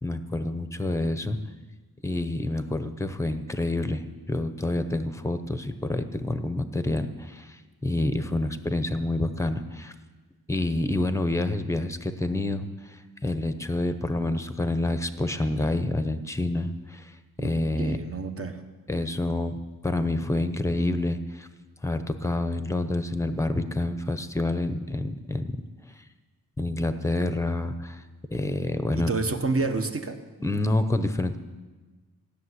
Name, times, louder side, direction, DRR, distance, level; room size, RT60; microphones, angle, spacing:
voice 1, 0.0-1.4 2.0-9.9 10.5-17.1 17.4-18.0 18.9-19.5 19.8-21.5 21.8-25.6 26.6-28.0 28.3-29.1 30.4-31.4, left 2 dB, 10° left, 10 dB, 0.8 m, -28 dB
voice 2, 17.8-18.6 28.9-30.2, right 3 dB, 40° right, 6 dB, 1.2 m, -28 dB
15.5 x 6.9 x 9.7 m, 1.3 s
wide cardioid pair, 140°, 37 cm